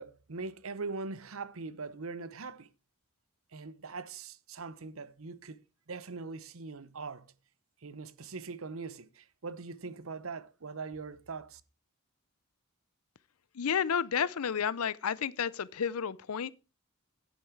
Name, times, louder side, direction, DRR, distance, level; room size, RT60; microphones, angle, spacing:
voice 1, 0.0-2.7 3.5-5.6 5.9-7.3 7.8-11.6, right 4 dB, 70° right, 0.8 m, -41 dB
voice 2, 13.5-16.5, left 7 dB, 80° left, 0.6 m, -31 dB
10.0 x 9.5 x 4.6 m
head